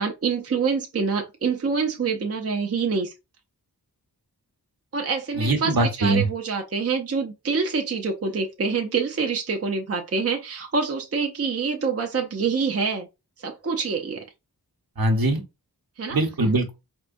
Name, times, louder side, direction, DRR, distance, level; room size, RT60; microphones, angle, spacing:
voice 1, 0.0-3.1 4.9-13.1 13.4-14.2 16.0-16.2, right 5 dB, 40° right, 0.5 m, -26 dB
voice 2, 5.4-6.2 15.0-15.4 16.1-16.7, right 2 dB, 65° right, 0.9 m, -22 dB
4.5 x 2.1 x 2.5 m
wide cardioid pair, 55°, 39 cm